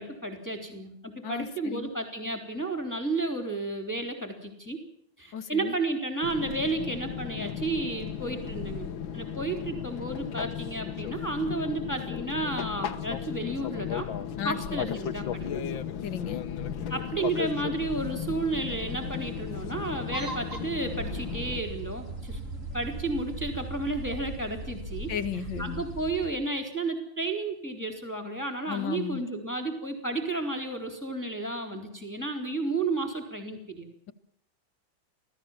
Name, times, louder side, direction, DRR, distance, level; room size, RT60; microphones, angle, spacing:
voice 1, 0.0-4.8 5.2-14.1 14.4-15.7 16.9-22.4 22.7-33.9, right 2 dB, 10° left, 4 dB, 3.8 m, -32 dB
voice 2, 1.2-1.9 5.3-5.7 14.4-15.0 16.0-16.4 25.1-25.8 28.7-29.2, left 8 dB, 75° left, 10 dB, 2.1 m, -34 dB
Fixed-wing aircraft airplane, 6.2-21.6, left 9 dB, 90° left, 1.9 m, -35 dB
sound 1, 17.8-26.3, right 2 dB, 40° right, 3.8 m, -39 dB
27.5 x 17.0 x 7.4 m, 0.74 s
omnidirectional pair, 2.1 m